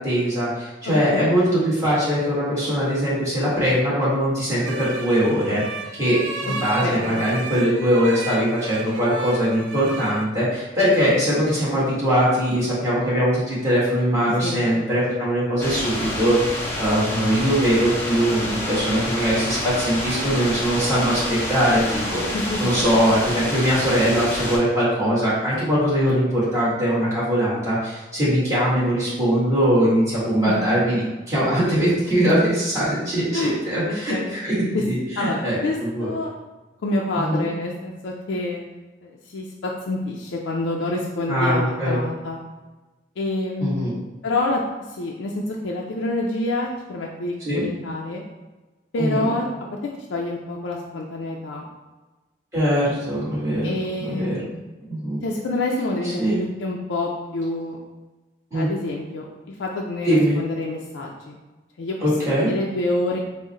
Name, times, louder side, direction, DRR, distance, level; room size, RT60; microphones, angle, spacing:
voice 1, 0.0-5.6 5.9-16.4 16.8-35.6 35.9-36.1 37.2-37.5 41.3-42.0 43.6-43.9 47.4-47.6 49.0-49.3 52.5-53.7 54.1-54.6 54.9-55.2 56.2-56.4 58.5-58.7 60.0-60.4 62.0-62.5, equal, 15° right, -10 dB, 1.3 m, -21 dB
voice 2, 0.9-1.6 6.4-6.5 6.8-7.3 14.4-14.6 22.3-22.9 30.4-30.6 33.3-33.6 33.8-34.4 34.7-34.8 35.2-36.3 36.8-38.6 39.0-42.4 43.2-44.6 44.9-48.2 48.9-49.5 50.1-51.6 53.6-54.4 55.2-57.8 58.5-61.4 61.8-62.0 62.4-63.2, left 2 dB, 90° left, -1 dB, 0.4 m, -27 dB
sound 1, 4.6-10.2, right 3 dB, 85° right, 0.4 m, -33 dB
sound 2, 15.6-24.6, left 1 dB, 10° left, 0.5 m, -28 dB
3.7 x 2.1 x 4.0 m, 1.2 s
head